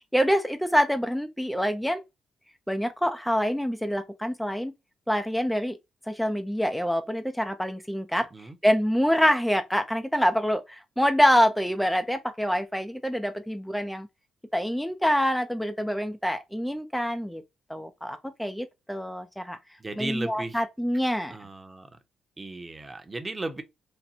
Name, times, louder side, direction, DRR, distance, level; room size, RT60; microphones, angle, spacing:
voice 1, 0.1-2.0 2.7-4.7 5.1-5.8 6.1-14.1 14.5-17.4 17.7-19.6 20.0-21.3, equal, ahead, 0.4 m, -26 dB
voice 2, 19.8-20.6 21.3-21.9 22.4-23.6, right 2 dB, 20° right, 0.8 m, -35 dB
4.3 x 2.1 x 4.0 m
cardioid pair, 115°, 0 cm